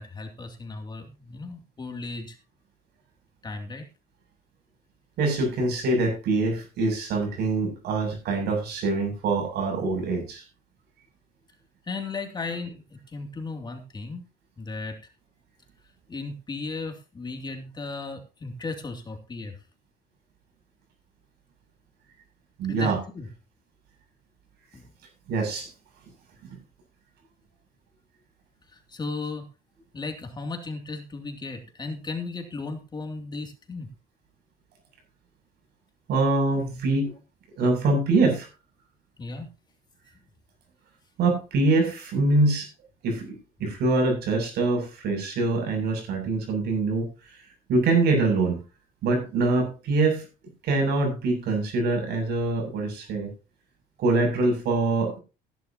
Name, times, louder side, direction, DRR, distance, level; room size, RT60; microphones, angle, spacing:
voice 1, 0.0-2.4 3.4-3.9 11.9-14.2 14.6-15.0 16.1-19.5 22.7-23.3 24.7-24.8 28.9-29.4 29.9-33.9 39.2-39.5, left 3 dB, 25° left, 4 dB, 2.7 m, -35 dB
voice 2, 5.2-10.4 22.6-23.0 25.3-25.7 26.5-26.6 36.1-37.1 37.6-38.5 41.2-42.7 43.0-47.1 47.7-48.6 49.0-50.3 50.6-53.3 54.0-55.2, right 3 dB, 75° right, 4 dB, 7.6 m, -24 dB
16.5 x 11.0 x 2.9 m, 0.31 s
cardioid pair, 110°, 17 cm